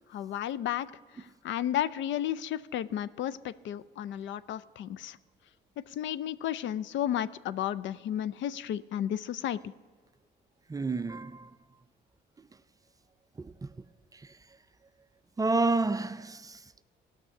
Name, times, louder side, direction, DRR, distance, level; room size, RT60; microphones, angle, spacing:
voice 1, 0.1-0.9 1.1-5.2 5.8-9.7, left 11 dB, 70° left, 0.4 m, -33 dB
voice 2, 10.7-11.5 13.4-13.7 14.1-14.3 15.4-16.8, right 3 dB, 20° right, 0.4 m, -30 dB
16.5 x 6.1 x 6.5 m
cardioid pair, 90°, 20 cm